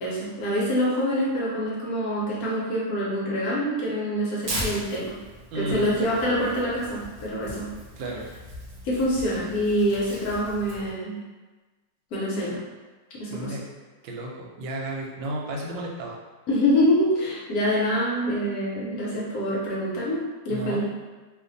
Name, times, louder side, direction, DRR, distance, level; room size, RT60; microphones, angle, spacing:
voice 1, 0.0-5.2 5.5-7.7 8.8-11.2 12.1-12.6 13.1-13.6 16.5-20.9, equal, 65° left, -5 dB, 1.0 m, -25 dB
Tearing, 4.4-10.9, right 1 dB, 70° right, 0.4 m, -38 dB
voice 2, 5.5-6.0 8.0-8.3 13.3-13.6 14.0-16.2 20.5-20.9, right 1 dB, 90° right, -1 dB, 1.3 m, -33 dB
2.8 x 2.5 x 3.8 m, 1.3 s
omnidirectional pair, 2.0 m